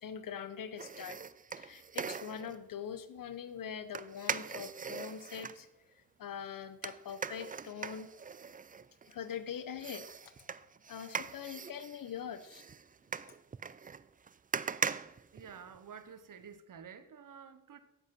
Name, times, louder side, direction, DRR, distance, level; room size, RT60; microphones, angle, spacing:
voice 1, 0.0-1.2 1.6-5.7 5.9-8.1 9.1-10.1 10.9-12.6, left 8 dB, 90° left, 13 dB, 0.8 m, -43 dB
sound 1, 0.8-2.6 3.9-5.6 6.8-9.4 9.8-16.0 16.4-16.5, right 6 dB, 25° right, 0.3 m, -41 dB
voice 2, 15.3-17.8, right 7 dB, 75° right, 11 dB, 0.9 m, -50 dB
7.9 x 7.7 x 5.9 m, 0.90 s
cardioid pair, 55°, 32 cm